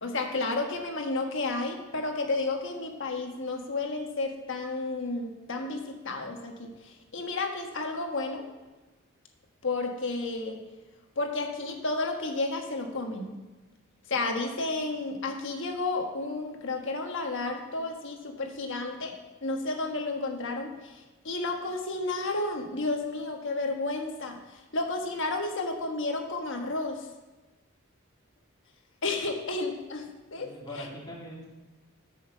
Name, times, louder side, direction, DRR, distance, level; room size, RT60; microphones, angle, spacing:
voice 1, 0.0-8.4 9.6-10.6 11.2-13.4 14.1-19.1 19.4-27.1 29.0-30.9, left 2 dB, 65° left, 3 dB, 1.4 m, -32 dB
voice 2, 30.4-31.4, left 1 dB, 20° left, -5 dB, 2.6 m, -42 dB
7.5 x 6.5 x 6.8 m, 1.2 s
head